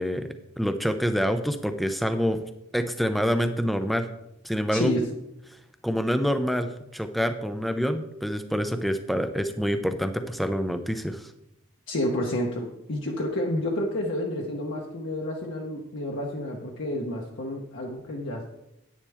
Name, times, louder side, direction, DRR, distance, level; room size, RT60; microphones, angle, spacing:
voice 1, 0.0-2.4 2.7-4.1 4.4-5.0 5.8-11.3, equal, ahead, 9 dB, 0.5 m, -26 dB
voice 2, 4.7-5.1 11.9-18.5, left 1 dB, 55° left, -1 dB, 1.0 m, -30 dB
10.0 x 9.7 x 3.5 m, 0.84 s
head